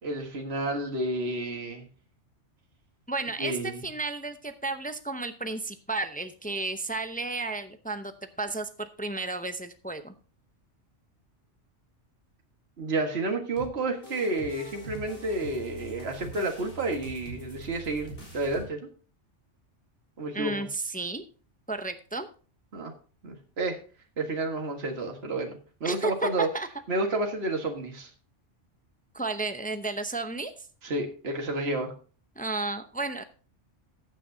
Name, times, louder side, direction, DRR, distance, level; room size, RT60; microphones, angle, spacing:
voice 1, 0.0-1.9 3.4-3.8 12.8-18.9 20.2-20.7 22.7-22.9 23.2-23.8 24.2-26.5 26.9-28.1 30.8-31.9, right 2 dB, 55° right, 3 dB, 1.9 m, -30 dB
voice 2, 3.1-8.1 8.4-10.1 20.3-21.2 21.7-22.3 25.8-26.7 29.1-30.5 32.4-33.2, right 3 dB, 10° left, 9 dB, 0.5 m, -32 dB
sound 1, 13.6-18.6, right 2 dB, 50° left, 4.3 m, -43 dB
14.5 x 9.2 x 2.7 m, 0.39 s
omnidirectional pair, 1.3 m